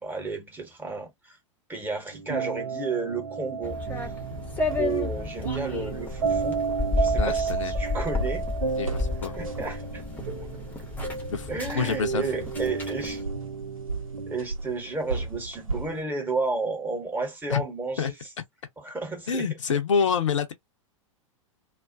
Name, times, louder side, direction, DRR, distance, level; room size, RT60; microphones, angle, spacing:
voice 1, 0.0-1.4 1.7-3.8 4.7-6.6 7.0-8.4 9.3-10.0 11.5-13.2 14.3-18.1 18.8-19.6, right 3 dB, 10° right, 1.0 m, -32 dB
sound 1, 2.1-14.4, right 6 dB, 65° right, 0.7 m, -32 dB
sound 2, 3.6-13.2, left 3 dB, 10° left, 0.7 m, -32 dB
sound 3, 4.2-16.0, right 3 dB, 85° right, 1.0 m, -38 dB
voice 2, 7.2-7.7 8.8-9.4 11.3-11.5 11.7-12.2 12.6-12.7 17.5-17.6 18.0-18.1 19.3-20.5, left 6 dB, 65° left, 0.6 m, -27 dB
2.3 x 2.1 x 2.5 m
figure-of-eight pair, 95°, 17 cm